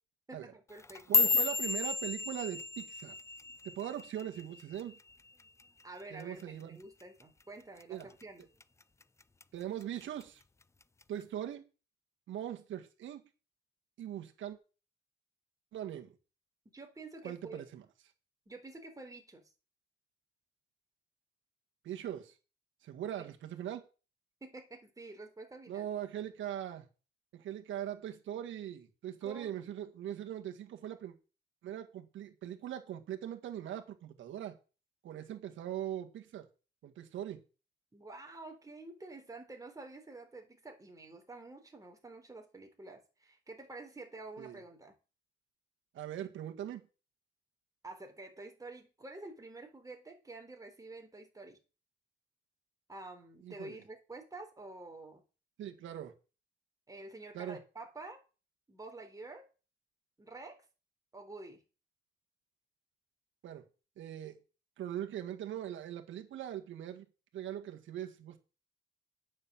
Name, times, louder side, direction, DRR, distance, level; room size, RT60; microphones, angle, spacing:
voice 1, 0.3-1.3 5.8-8.4 16.7-17.6 18.5-19.4 23.2-23.3 24.4-25.9 29.2-29.7 37.9-44.9 47.8-51.6 52.9-55.2 56.9-58.2 58.7-59.4 60.2-60.6 61.1-61.6, right 2 dB, 15° right, 4 dB, 3.7 m, -49 dB
sound 1, 0.7-5.1 5.4-5.8 6.2-6.6 7.0-7.2 7.8-8.2 8.6-9.4 9.8-10.2 11.0-11.1, left 4 dB, 15° left, 0.5 m, -32 dB
voice 2, 1.1-3.2 3.8-5.0 6.1-6.8 7.9-8.1 9.5-10.4 11.1-11.6 12.3-13.2 14.0-14.6 15.7-16.1 17.2-17.8 21.8-22.3 22.8-23.8 25.7-26.9 27.3-31.1 31.6-34.6 35.0-36.5 36.8-37.4 44.4-44.6 45.9-46.8 53.4-53.8 55.6-56.1 57.3-57.6 63.4-63.6 64.0-64.4 64.8-67.1 67.3-68.4, right 11 dB, 75° right, 4 dB, 1.9 m, -41 dB
9.3 x 6.5 x 7.6 m, 0.34 s
cardioid pair, 90°, 20 cm